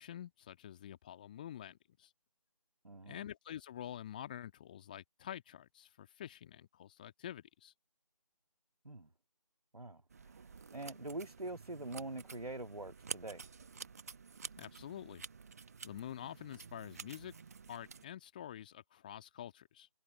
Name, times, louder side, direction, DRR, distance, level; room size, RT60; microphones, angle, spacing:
voice 1, 0.0-2.1 3.1-7.7 14.6-15.2 15.8-17.3 17.7-19.9, left 11 dB, 15° left, 1.9 m, -47 dB
voice 2, 2.8-3.3 8.8-9.1 9.7-13.5, right 2 dB, 70° right, 2.1 m, -45 dB
sound 1, 10.1-18.0, right 5 dB, 25° right, 1.7 m, -50 dB
figure-of-eight pair, 160°, 20 cm